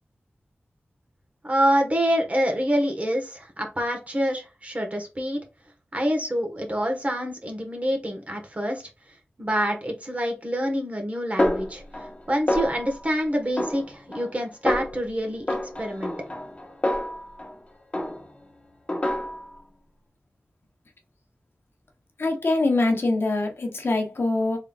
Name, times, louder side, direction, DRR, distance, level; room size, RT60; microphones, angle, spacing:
voice 1, 1.4-5.4 5.9-8.9 9.4-11.8 12.3-16.1, equal, 35° right, 1.3 m, -26 dB
Snare drum, 11.4-12.2 12.5-13.0 13.6-14.3 14.7-15.0 15.5-17.6 17.9-18.4 18.9-19.6, left 1 dB, 30° left, 0.9 m, -28 dB
voice 2, 22.2-24.6, left 2 dB, 65° left, 0.9 m, -23 dB
3.6 x 3.5 x 2.3 m
wide cardioid pair, 60°, 4 cm